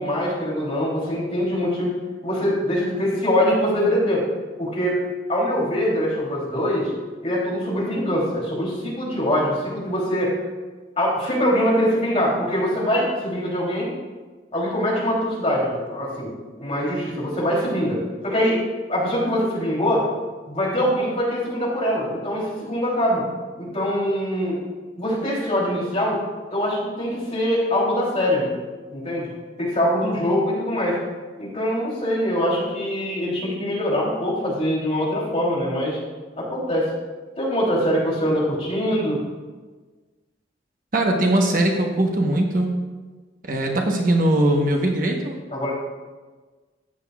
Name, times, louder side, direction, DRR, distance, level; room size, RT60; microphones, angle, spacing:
voice 1, 0.0-2.0 2.2-4.2 4.6-5.0 5.3-6.9 7.2-10.3 11.0-13.9 14.5-16.3 16.6-18.6 18.9-20.1 20.5-23.3 23.6-24.6 25.0-26.2 26.5-28.5 28.9-29.3 29.6-31.0 31.4-36.0 36.4-36.9 37.4-39.2 45.5-45.7, equal, 35° left, -5 dB, 3.1 m, -23 dB
voice 2, 40.9-42.7 43.4-45.4, right 1 dB, 45° right, 1 dB, 1.0 m, -20 dB
13.5 x 9.1 x 2.4 m, 1.3 s
head